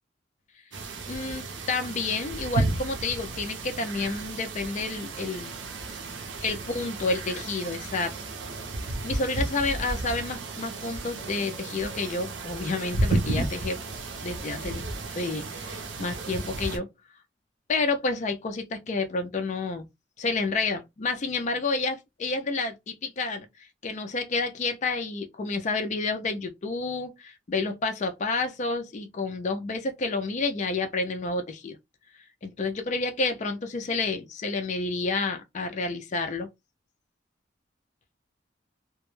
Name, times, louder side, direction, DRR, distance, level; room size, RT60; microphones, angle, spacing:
sound 1, 0.7-16.8, right 2 dB, 70° right, 0.5 m, -33 dB
voice 1, 1.1-5.5 6.4-8.1 8.8-13.8 14.2-14.8 15.2-16.9 17.7-19.9 20.2-31.8 32.4-36.5, left 3 dB, 40° left, 0.4 m, -30 dB
2.2 x 2.0 x 3.0 m
head